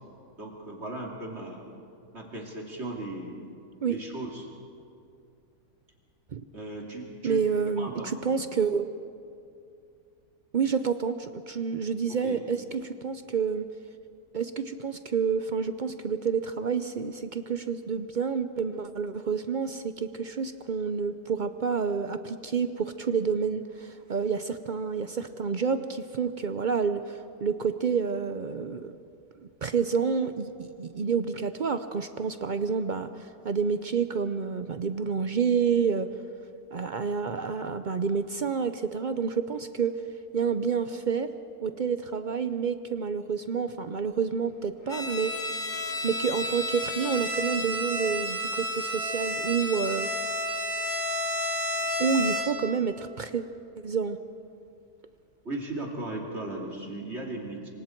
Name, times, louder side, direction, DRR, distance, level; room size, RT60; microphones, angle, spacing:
voice 1, 0.4-1.6 2.1-3.4 3.9-4.5 6.5-7.4 7.8-8.1 12.1-12.4 55.4-57.7, right 2 dB, 45° right, -1 dB, 3.1 m, -37 dB
voice 2, 7.2-8.9 10.5-13.6 14.3-28.9 29.6-36.1 36.7-40.0 40.3-41.3 41.6-45.5 46.0-50.1 52.0-53.4 53.8-54.2, right 6 dB, 60° right, 10 dB, 0.5 m, -29 dB
Bowed string instrument, 44.9-52.7, equal, 80° left, 3.5 m, -31 dB
26.5 x 25.0 x 4.5 m, 2.5 s
omnidirectional pair, 1.7 m